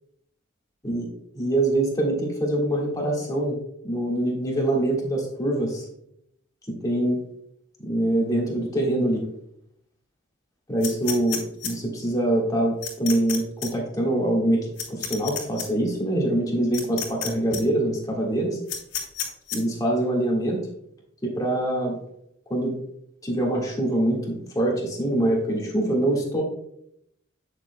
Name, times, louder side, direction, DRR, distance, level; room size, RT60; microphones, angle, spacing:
voice 1, 1.3-3.6 3.8-5.8 6.7-7.2 7.8-9.2 10.7-18.6 19.5-20.6 21.2-22.0 22.5-22.8 23.2-26.4, right 1 dB, 20° left, -2 dB, 1.7 m, -24 dB
sound 1, 10.8-11.7 12.8-13.4 13.6-13.7 14.8-15.6 16.7-17.3 17.5-17.6 18.7-19.6, left 9 dB, 75° left, 2.3 m, -30 dB
8.8 x 6.7 x 2.2 m, 0.72 s
head